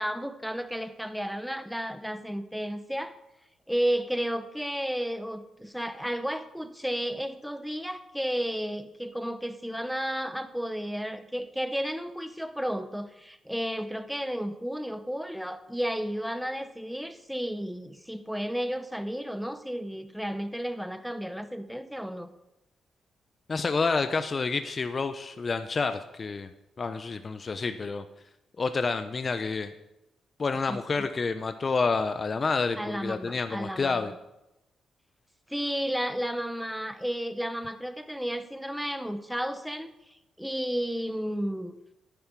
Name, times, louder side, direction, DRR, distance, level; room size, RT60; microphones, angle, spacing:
voice 1, 0.0-3.2 3.7-22.3 30.7-31.1 32.8-34.1 35.5-41.7, equal, ahead, 10 dB, 1.0 m, -32 dB
voice 2, 23.5-26.5 26.8-28.0 28.6-29.7 30.4-34.1, left 4 dB, 40° left, 9 dB, 0.6 m, -29 dB
10.5 x 9.8 x 4.7 m, 0.91 s
cardioid pair, 75°, 0 cm